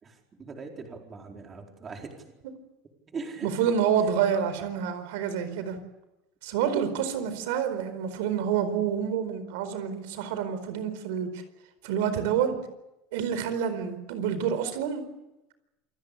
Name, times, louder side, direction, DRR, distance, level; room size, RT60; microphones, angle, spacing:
voice 1, 0.0-2.2 3.1-3.5, right 4 dB, 25° right, 2 dB, 4.4 m, -40 dB
voice 2, 3.4-5.8 6.4-11.3 11.8-12.6 13.1-15.0, right 8 dB, 90° right, 11 dB, 4.5 m, -28 dB
28.0 x 18.0 x 8.6 m, 0.96 s
cardioid pair, 140°, 0 cm